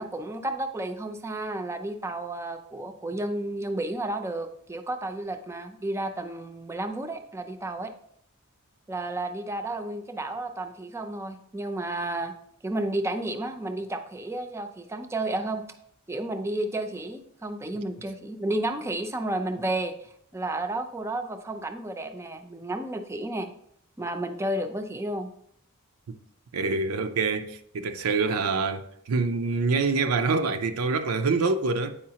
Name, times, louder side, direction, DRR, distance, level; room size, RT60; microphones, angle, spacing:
voice 1, 0.0-7.9 8.9-12.3 12.6-15.7 16.1-23.5 24.0-25.3, right 1 dB, 10° right, 0.4 m, -32 dB
voice 2, 26.5-31.9, right 4 dB, 85° right, 0.5 m, -26 dB
8.5 x 4.8 x 2.8 m
head